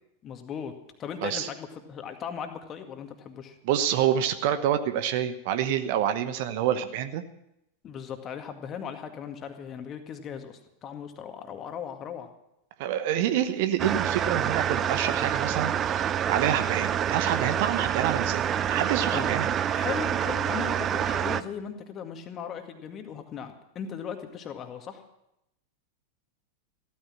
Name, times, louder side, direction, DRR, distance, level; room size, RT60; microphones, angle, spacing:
voice 1, 0.2-0.7 1.0-3.6 7.8-12.3 19.0-19.3 19.7-25.0, left 7 dB, 30° left, 6 dB, 2.0 m, -38 dB
voice 2, 3.6-7.2 12.8-19.5, right 10 dB, 50° right, 11 dB, 1.1 m, -27 dB
sound 1, 13.8-21.4, right 9 dB, 25° right, 0.6 m, -27 dB
15.0 x 13.5 x 6.2 m, 0.82 s
figure-of-eight pair, 90°, 0 cm